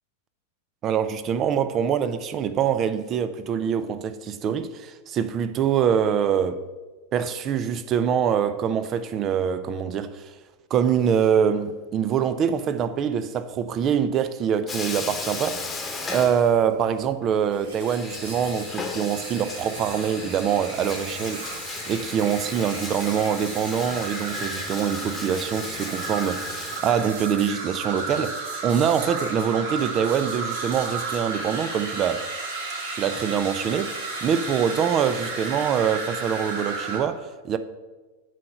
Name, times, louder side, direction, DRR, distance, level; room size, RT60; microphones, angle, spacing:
voice 1, 0.8-6.6 7.1-10.3 10.7-15.6 16.1-21.6 21.8-32.3 32.9-37.6, right 8 dB, 30° right, 0.5 m, -24 dB
Bathtub (filling or washing), 14.7-17.0 17.2-17.3 17.8-26.8, left 3 dB, 15° left, 1.1 m, -36 dB
sound 1, 17.5-37.0, right 3 dB, 55° right, 2.0 m, -34 dB
7.6 x 4.9 x 5.6 m
figure-of-eight pair, 90°, 0 cm